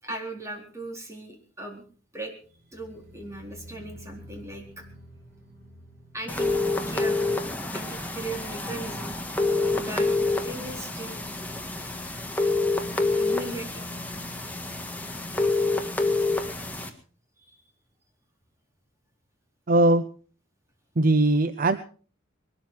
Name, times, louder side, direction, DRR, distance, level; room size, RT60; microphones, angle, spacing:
voice 1, 0.0-1.8 2.1-2.3 2.7-4.8 6.1-6.5 6.9-7.2 7.7-9.2 9.8-10.1 10.4-11.5 11.8-12.2 13.1-13.8 15.5-15.7 17.4-17.6, right 2 dB, 15° right, 1 dB, 4.3 m, -38 dB
sound 1, 2.4-9.5 9.8-10.3 10.6-10.7, equal, 65° right, 5.9 m, -51 dB
sound 2, 6.3-16.9, left 3 dB, 10° left, 1.8 m, -27 dB
voice 2, 19.7-20.0 21.0-21.8, right 2 dB, 45° right, 11 dB, 0.7 m, -20 dB
21.5 x 13.0 x 4.7 m, 0.41 s
head